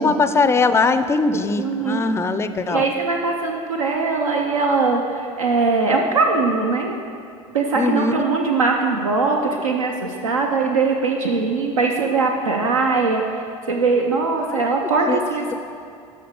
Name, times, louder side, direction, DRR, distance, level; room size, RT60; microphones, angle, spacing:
voice 1, 0.0-2.8 7.8-8.2 14.5-14.6 15.1-15.2, left 4 dB, 15° left, 11 dB, 0.4 m, -20 dB
voice 2, 1.3-2.1 2.7-7.0 7.5-13.2 13.7-15.5, right 4 dB, 80° right, 1 dB, 0.6 m, -21 dB
12.5 x 5.7 x 3.6 m, 2.5 s
figure-of-eight pair, 70°, 17 cm